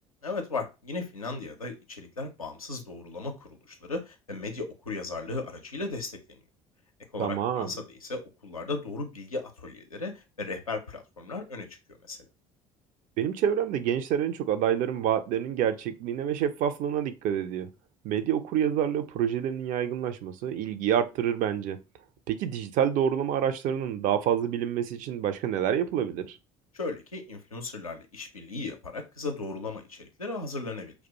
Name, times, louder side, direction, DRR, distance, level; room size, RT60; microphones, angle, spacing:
voice 1, 0.2-6.4 7.1-11.7 12.1-12.2 26.7-30.9, left 3 dB, 90° left, 0.5 m, -36 dB
voice 2, 7.2-7.7 13.2-17.7 18.0-21.8 22.3-26.4, right 9 dB, 50° right, 0.4 m, -27 dB
2.3 x 2.1 x 2.8 m
figure-of-eight pair, 55°, 18 cm